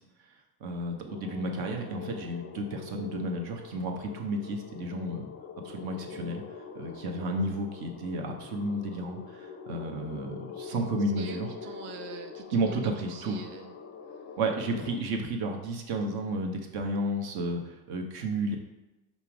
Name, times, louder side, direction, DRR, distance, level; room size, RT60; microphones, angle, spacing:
voice 1, 0.6-5.3 5.6-6.4 6.7-11.5 12.5-13.4 14.4-18.6, right 1 dB, 60° right, 2 dB, 0.9 m, -32 dB
sound 1, 1.1-15.0, left 6 dB, 25° left, 0.5 m, -44 dB
voice 2, 11.2-13.7, right 6 dB, 30° right, 5 dB, 0.4 m, -43 dB
5.5 x 2.0 x 4.7 m, 0.98 s
supercardioid pair, 80°, 41 cm